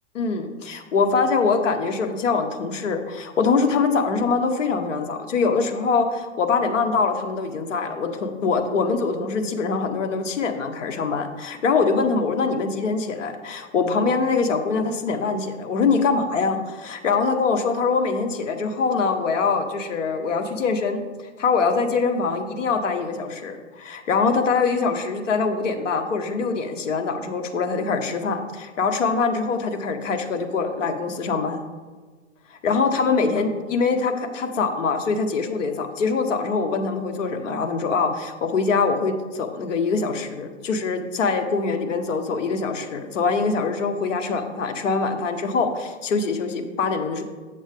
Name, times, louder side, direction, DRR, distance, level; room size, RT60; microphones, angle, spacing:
voice 1, 0.1-21.0 21.4-31.6 32.6-47.2, left 4 dB, 85° left, 6 dB, 1.1 m, -23 dB
7.5 x 7.1 x 3.5 m, 1.4 s
hypercardioid pair, 120°, 37 cm